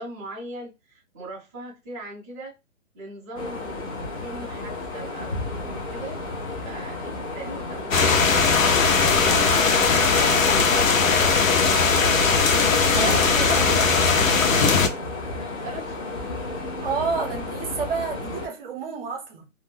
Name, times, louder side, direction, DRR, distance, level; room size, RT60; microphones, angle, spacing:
voice 1, 0.0-2.5 2.9-3.9 4.2-6.2 6.6-8.3 8.7-11.9 12.2-12.5 15.6-16.4, right 1 dB, 15° right, 0.5 m, -39 dB
sound 1, 3.4-18.5, left 2 dB, 25° left, 0.7 m, -32 dB
sound 2, 7.9-14.9, left 5 dB, 85° left, 0.7 m, -19 dB
voice 2, 12.9-14.2 16.8-19.5, right 5 dB, 45° right, 0.9 m, -30 dB
2.5 x 2.0 x 3.2 m
hypercardioid pair, 150°, 39 cm